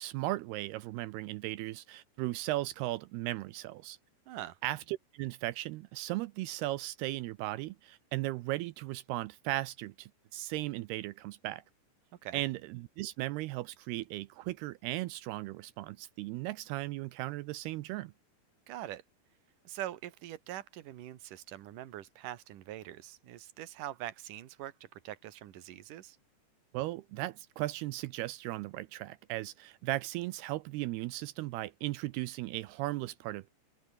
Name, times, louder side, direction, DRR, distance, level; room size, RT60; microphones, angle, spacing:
voice 1, 0.0-4.0 4.6-11.6 12.3-18.1 26.7-33.5, right 17 dB, 85° right, 2.3 m, -37 dB
voice 2, 4.3-4.6 12.2-12.4 18.7-19.0 19.6-26.2, right 13 dB, 65° right, 2.3 m, -43 dB
open air
omnidirectional pair, 5.3 m